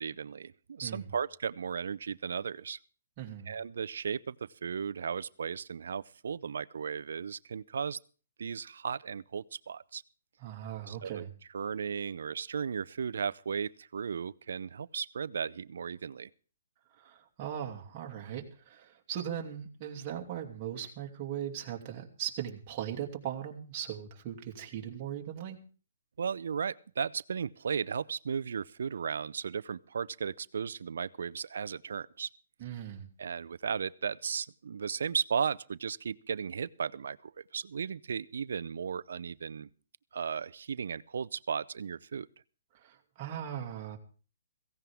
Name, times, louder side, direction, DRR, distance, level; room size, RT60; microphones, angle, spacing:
voice 1, 0.0-2.8 3.5-4.4 4.6-8.0 8.4-10.0 10.9-11.2 11.5-16.3 26.2-32.3 33.2-39.7 40.1-42.3, right 6 dB, 75° right, 19 dB, 0.6 m, -35 dB
voice 2, 0.8-1.2 3.2-3.5 10.4-11.3 17.0-25.6 32.6-33.1 42.8-44.0, right 10 dB, 30° right, 1 dB, 2.5 m, -39 dB
16.5 x 16.0 x 3.6 m, 0.39 s
hypercardioid pair, 155°, 0 cm